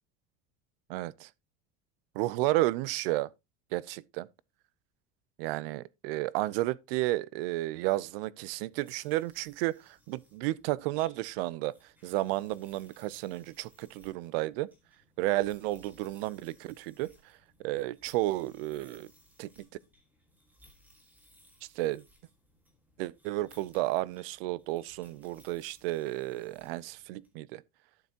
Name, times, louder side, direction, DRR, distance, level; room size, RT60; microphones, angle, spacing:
voice 1, 0.9-1.3 2.1-3.3 3.7-4.3 5.4-9.8 10.1-11.7 12.0-14.7 15.2-17.1 17.6-19.1 19.4-19.7 21.8-22.0 23.0-27.6, right 17 dB, 70° right, 0.6 m, -32 dB
sound 1, 8.5-27.3, equal, 5° right, 1.6 m, -63 dB
12.0 x 6.8 x 2.8 m
cardioid pair, 175°, 30 cm